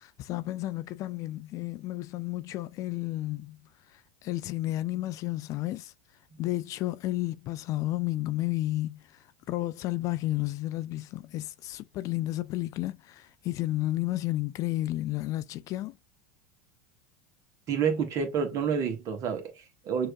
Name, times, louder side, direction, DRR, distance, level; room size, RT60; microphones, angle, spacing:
voice 1, 0.0-3.6 3.9-5.9 6.4-16.0, left 16 dB, 45° left, 0.3 m, -32 dB
voice 2, 17.7-20.1, right 7 dB, 45° right, 1.5 m, -29 dB
6.2 x 2.9 x 2.3 m
hypercardioid pair, 85°, 8 cm